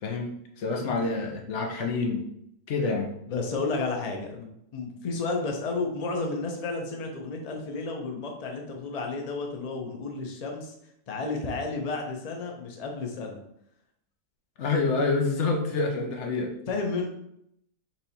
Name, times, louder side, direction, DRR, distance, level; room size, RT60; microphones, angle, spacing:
voice 1, 0.0-2.2 2.7-3.1 14.6-16.5, left 3 dB, 55° left, 3 dB, 0.8 m, -27 dB
voice 2, 3.3-10.7 11.1-13.4 16.7-17.1, left 3 dB, 80° left, 2 dB, 0.3 m, -32 dB
4.5 x 2.8 x 4.1 m, 0.74 s
omnidirectional pair, 1.7 m